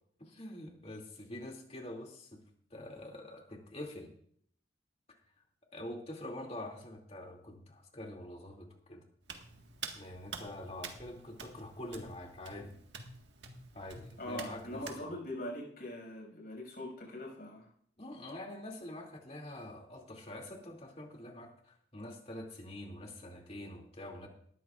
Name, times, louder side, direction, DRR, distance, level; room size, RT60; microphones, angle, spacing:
voice 1, 0.2-2.4 2.7-4.1 5.7-9.0 9.9-12.7 13.7-15.0 18.0-24.3, left 1 dB, 35° left, 1 dB, 2.6 m, -45 dB
Hands, 9.2-15.0, right 5 dB, 75° right, 1.7 m, -48 dB
voice 2, 14.2-17.7, left 1 dB, 55° left, 0 dB, 6.3 m, -42 dB
19.0 x 13.5 x 2.5 m, 0.62 s
head